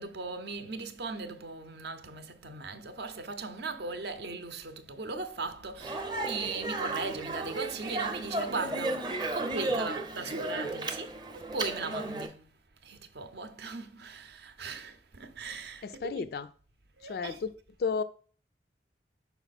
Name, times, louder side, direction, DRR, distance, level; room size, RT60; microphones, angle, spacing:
voice 1, 0.0-16.3 17.0-17.4, right 3 dB, 65° right, 0.6 m, -38 dB
Speech, 5.8-12.3, right 2 dB, 25° right, 0.6 m, -34 dB
voice 2, 15.8-16.5 17.0-17.5 17.8-18.0, left 5 dB, 60° left, 0.3 m, -32 dB
5.8 x 4.0 x 4.1 m
head